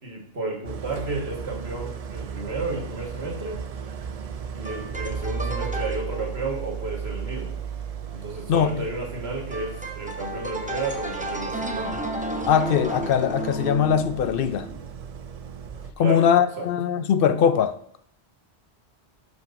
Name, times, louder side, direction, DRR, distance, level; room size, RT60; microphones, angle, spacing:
voice 1, 0.0-3.6 4.5-7.6 8.1-12.0 16.0-16.2 16.6-16.7, right 3 dB, 70° right, 1.9 m, -32 dB
Idling, 0.6-15.9, right 7 dB, 50° right, 0.5 m, -36 dB
sound 1, 4.6-6.5 9.5-14.8, right 1 dB, 10° right, 0.8 m, -33 dB
voice 2, 8.5-8.8 12.5-14.7 16.0-17.8, left 8 dB, 65° left, 0.7 m, -21 dB
12.0 x 5.8 x 2.6 m
omnidirectional pair, 1.1 m